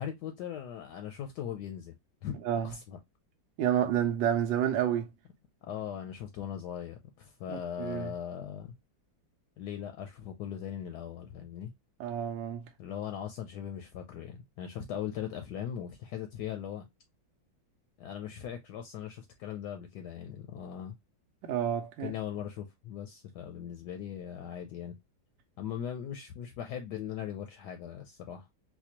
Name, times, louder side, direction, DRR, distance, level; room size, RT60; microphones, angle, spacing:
voice 1, 0.0-1.9 2.2-3.0 5.6-8.7 9.6-11.7 12.8-16.9 18.0-21.0 22.0-25.0 25.6-28.5, left 9 dB, 75° left, 1.0 m, -39 dB
voice 2, 3.6-5.1 7.5-8.1 12.0-12.6 21.4-22.1, right 10 dB, 80° right, 1.3 m, -29 dB
4.2 x 2.3 x 2.8 m
omnidirectional pair, 2.0 m